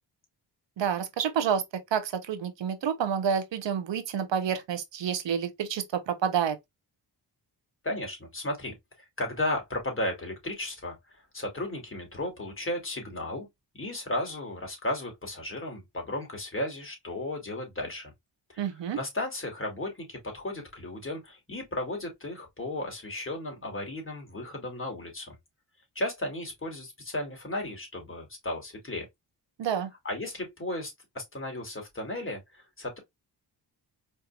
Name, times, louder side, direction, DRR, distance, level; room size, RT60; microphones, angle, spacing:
voice 1, 0.8-1.6 1.9-6.6 18.6-19.0 29.6-29.9, right 8 dB, 80° right, 0.9 m, -29 dB
voice 2, 7.8-13.5 13.7-18.1 18.5-18.7 18.9-25.4 25.9-29.1 30.0-33.0, left 1 dB, 30° left, 2.6 m, -34 dB
4.6 x 3.4 x 2.4 m
cardioid pair, 75°, 43 cm